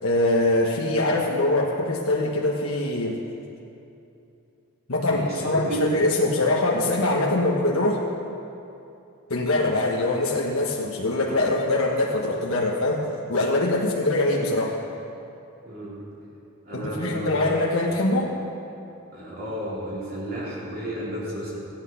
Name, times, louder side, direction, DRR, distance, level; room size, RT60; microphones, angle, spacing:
voice 1, 0.0-3.2 4.9-8.0 9.3-13.0 13.3-14.8 16.7-18.3, left 2 dB, 70° left, -2 dB, 1.3 m, -23 dB
voice 2, 5.0-5.8 15.6-16.1 16.6-17.5 19.1-21.6, right 1 dB, 45° right, -7 dB, 3.1 m, -33 dB
16.5 x 8.9 x 5.7 m, 2.8 s
head